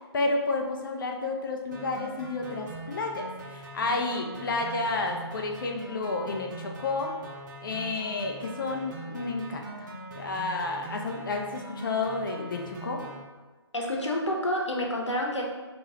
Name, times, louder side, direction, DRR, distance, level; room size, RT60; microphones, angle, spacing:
voice 1, 0.1-7.1 7.6-9.9 10.2-13.0, left 3 dB, 50° left, 2 dB, 0.6 m, -31 dB
sound 1, 1.7-13.2, right 2 dB, 40° right, 0.9 m, -42 dB
voice 2, 13.7-15.4, left 1 dB, 90° left, 0 dB, 1.0 m, -28 dB
4.5 x 3.1 x 2.8 m, 1.3 s
figure-of-eight pair, 150°, 15 cm